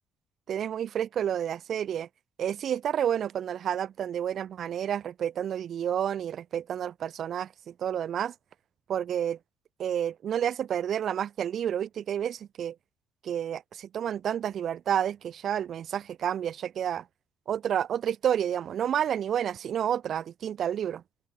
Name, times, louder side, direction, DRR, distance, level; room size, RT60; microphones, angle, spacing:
voice 1, 0.5-2.1 2.4-8.3 8.9-9.4 9.8-12.7 13.2-17.0 17.5-21.0, right 9 dB, 55° right, 1.0 m, -30 dB
open air
cardioid pair, 100°, 0 cm